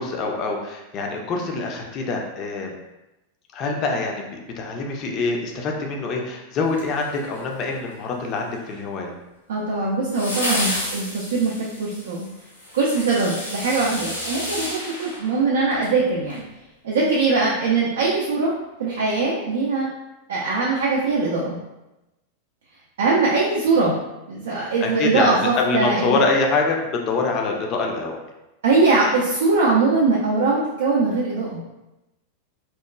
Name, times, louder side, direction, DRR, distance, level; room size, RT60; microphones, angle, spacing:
voice 1, 0.0-2.8 3.5-9.2 23.8-23.9 24.8-28.2, left 3 dB, 35° left, 1 dB, 0.4 m, -25 dB
sound 1, 6.7-7.6 10.1-16.0 16.3-16.4, left 1 dB, 80° left, 0.7 m, -31 dB
voice 2, 9.5-12.3 12.7-16.4 16.8-18.5 18.8-19.9 20.3-21.6 23.0-24.0 24.3-26.2 28.6-31.6, right 3 dB, 60° right, -5 dB, 0.4 m, -21 dB
2.9 x 2.2 x 2.2 m, 0.97 s
figure-of-eight pair, 90°, 0 cm